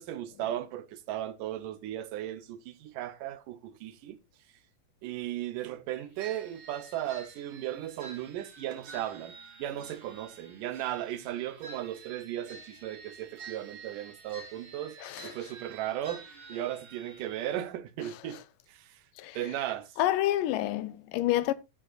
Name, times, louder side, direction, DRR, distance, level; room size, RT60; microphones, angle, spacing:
voice 1, 0.0-4.2 5.0-9.3 9.6-18.4 18.7-19.0 19.4-19.9, right 12 dB, 80° right, 2.5 m, -36 dB
sound 1, 6.2-17.6, right 4 dB, 65° right, 4.8 m, -50 dB
voice 2, 15.0-15.3 19.2-19.4 20.0-21.5, left 14 dB, 90° left, 2.4 m, -28 dB
14.0 x 9.3 x 2.5 m
omnidirectional pair, 3.7 m